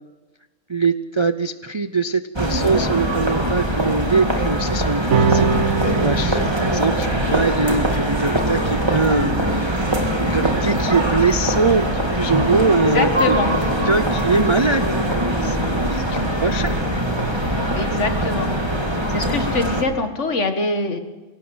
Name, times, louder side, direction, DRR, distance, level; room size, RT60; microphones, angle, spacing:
voice 1, 0.7-13.4 13.8-14.8 15.4-16.8, right 4 dB, 40° right, 11 dB, 0.4 m, -22 dB
sound 1, 2.4-19.8, equal, 15° right, 3.0 m, -22 dB
sound 2, 5.1-11.8, right 5 dB, 55° right, 1.2 m, -26 dB
voice 2, 12.8-13.5 17.7-18.5 19.1-21.0, left 3 dB, 55° left, 7 dB, 2.1 m, -23 dB
22.5 x 17.5 x 8.0 m, 1.2 s
omnidirectional pair, 1.5 m